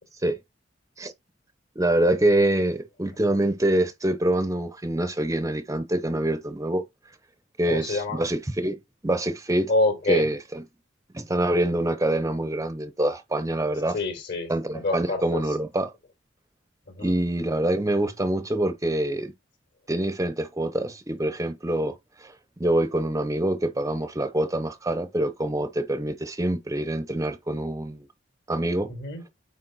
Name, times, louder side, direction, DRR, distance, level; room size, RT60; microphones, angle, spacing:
voice 1, 1.8-6.8 7.6-9.7 10.1-10.6 11.1-14.0 14.5-15.9 17.0-19.3 19.9-28.1 28.5-28.9, right 1 dB, 15° right, 0.7 m, -25 dB
voice 2, 7.7-8.2 9.7-10.3 13.9-15.6 16.9-17.2 28.9-29.2, left 2 dB, 60° left, 4.3 m, -27 dB
9.1 x 3.5 x 4.0 m
head